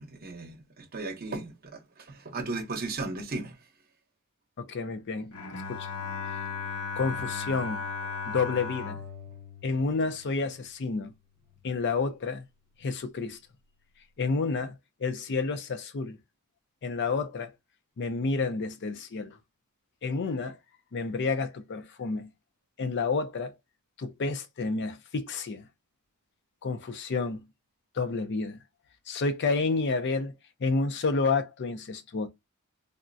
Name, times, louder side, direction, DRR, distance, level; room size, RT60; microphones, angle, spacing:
voice 1, 0.0-3.6, right 3 dB, 45° right, 0.7 m, -36 dB
voice 2, 4.6-5.9 7.0-7.8 8.3-9.0 9.6-11.1 11.6-12.4 12.8-13.4 14.2-14.7 15.0-16.2 16.8-17.5 18.0-19.4 20.0-20.6 20.9-22.3 22.8-23.5 24.0-25.7 26.6-27.4 27.9-28.6 29.1-30.3 30.6-32.3, left 4 dB, 55° left, 0.5 m, -30 dB
Bowed string instrument, 5.3-10.6, left 5 dB, 80° left, 1.1 m, -36 dB
3.5 x 2.0 x 2.5 m
head